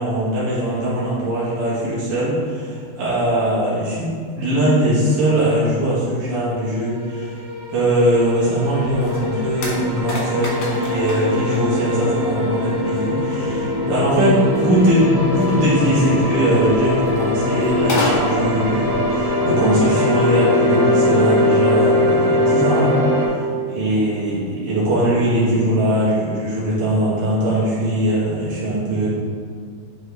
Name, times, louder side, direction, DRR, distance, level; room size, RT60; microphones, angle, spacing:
voice 1, 0.0-7.4 7.7-23.0 23.7-29.1, right 1 dB, 60° right, -9 dB, 2.8 m, -20 dB
sound 1, 7.1-23.3, left 1 dB, 85° right, 3.4 m, -21 dB
sound 2, 8.7-19.8, left 1 dB, 65° left, 1.6 m, -32 dB
8.8 x 3.6 x 3.4 m, 2.1 s
omnidirectional pair, 4.3 m